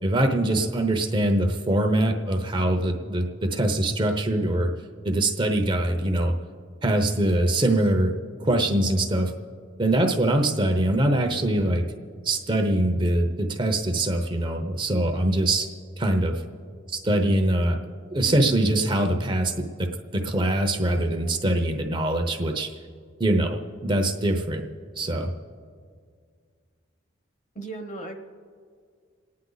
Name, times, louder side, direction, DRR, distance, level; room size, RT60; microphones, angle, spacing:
voice 1, 0.0-4.7 5.0-6.3 6.8-9.3 9.8-11.8 12.2-15.7 16.0-16.4 16.9-17.8 18.1-19.9 20.1-22.7 23.2-24.6 25.0-25.3, right 1 dB, 25° right, 3 dB, 0.9 m, -23 dB
voice 2, 27.5-28.2, right 2 dB, 35° left, 4 dB, 1.2 m, -36 dB
28.5 x 9.6 x 4.0 m, 2.1 s
head